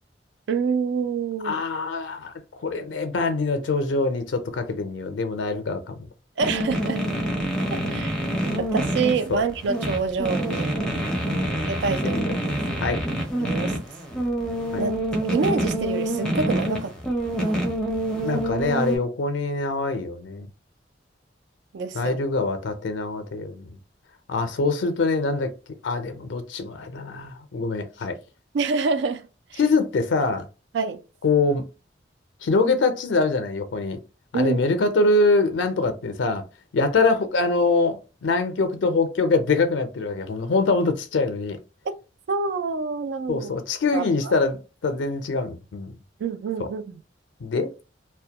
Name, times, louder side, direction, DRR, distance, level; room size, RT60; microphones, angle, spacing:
voice 1, 0.5-1.6 6.4-7.0 7.7-8.2 8.6-10.7 11.7-12.3 13.4-13.8 14.8-14.9 15.2-16.9 17.4-17.7 21.7-22.2 28.5-29.6 30.7-31.0 34.3-34.6 42.3-43.5 43.9-44.4 46.2-47.0, right 4 dB, 70° right, 0.3 m, -27 dB
voice 2, 1.4-2.3 2.6-6.1 7.8-7.9 9.3-9.4 11.3-11.5 12.0-12.4 12.8-13.0 14.7-14.9 18.1-20.5 21.9-23.8 24.3-25.5 25.8-28.2 29.6-30.5 31.2-31.7 32.4-34.0 34.3-36.4 36.7-41.6 43.3-46.0 46.6-46.7 47.4-47.7, left 3 dB, 80° left, 0.4 m, -24 dB
sound 1, 6.4-19.0, right 1 dB, 5° left, 0.5 m, -26 dB
2.2 x 2.1 x 2.8 m
head